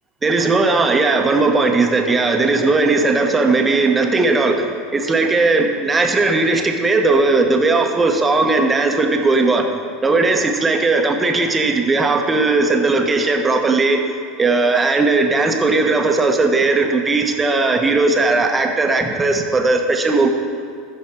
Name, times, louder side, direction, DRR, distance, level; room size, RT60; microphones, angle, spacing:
voice 1, 0.2-9.7 10.0-14.0 14.4-20.3, right 3 dB, 20° right, 3 dB, 1.2 m, -17 dB
14.0 x 5.6 x 4.6 m, 2.3 s
hypercardioid pair, 80°, 0 cm